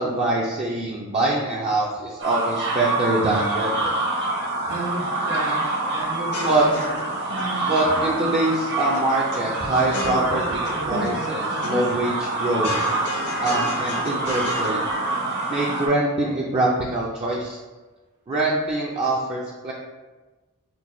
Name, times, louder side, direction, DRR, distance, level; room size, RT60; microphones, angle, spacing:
voice 1, 0.0-4.0 6.4-6.7 7.7-10.4 10.9-12.8 13.4-14.8 15.5-17.6 18.3-19.7, right 2 dB, 30° right, -4 dB, 0.4 m, -24 dB
sound 1, 2.2-15.9, right 2 dB, 55° right, 0.9 m, -26 dB
voice 2, 4.7-5.7 5.9-7.0 7.3-7.6, right 1 dB, 70° right, -11 dB, 1.3 m, -31 dB
sound 2, 6.1-7.4 7.8-8.4 8.7-10.7 11.0-11.7 12.0-14.7, left 2 dB, 85° left, 1.2 m, -33 dB
5.8 x 2.1 x 3.1 m, 1.2 s
head